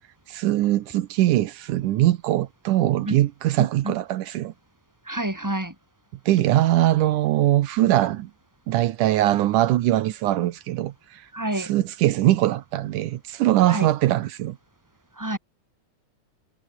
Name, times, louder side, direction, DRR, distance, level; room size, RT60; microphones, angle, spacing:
voice 1, 0.3-4.5 6.3-8.3 8.7-11.2 11.6-14.6, right 14 dB, 80° right, 2.4 m, -21 dB
voice 2, 3.6-3.9 5.1-5.7 11.3-11.7 13.7-13.9 15.2-15.4, right 1 dB, 5° right, 4.6 m, -28 dB
omnidirectional pair, 3.7 m